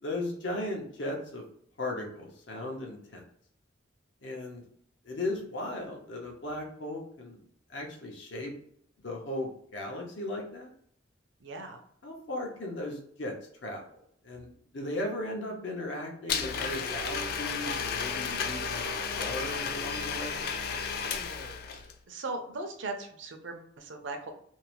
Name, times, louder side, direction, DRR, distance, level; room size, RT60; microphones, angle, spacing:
voice 1, 0.0-1.4 1.8-3.2 4.2-4.6 5.0-7.4 7.7-8.5 9.0-10.7 12.0-13.4 13.6-13.8 14.2-20.5, left 1 dB, 70° left, 0 dB, 0.7 m, -37 dB
voice 2, 11.4-11.8 21.7-24.3, right 3 dB, 75° right, 5 dB, 0.5 m, -39 dB
Domestic sounds home sounds, 16.3-21.9, left 5 dB, 50° left, 0.3 m, -33 dB
2.7 x 2.0 x 3.0 m, 0.64 s
head